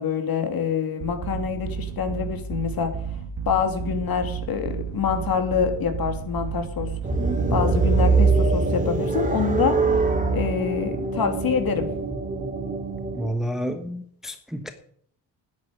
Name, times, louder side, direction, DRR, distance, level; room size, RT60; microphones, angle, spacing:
voice 1, 0.0-2.9 3.5-6.9 7.5-9.8 10.3-11.9, left 7 dB, 50° left, 6 dB, 2.7 m, -26 dB
sound 1, 1.0-7.9, right 6 dB, 65° right, 2.6 m, -32 dB
sound 2, 7.0-13.3, right 4 dB, 15° right, 2.7 m, -23 dB
voice 2, 13.2-14.7, equal, ahead, 7 dB, 1.2 m, -30 dB
10.5 x 8.8 x 9.4 m, 0.63 s
cardioid pair, 110°, 46 cm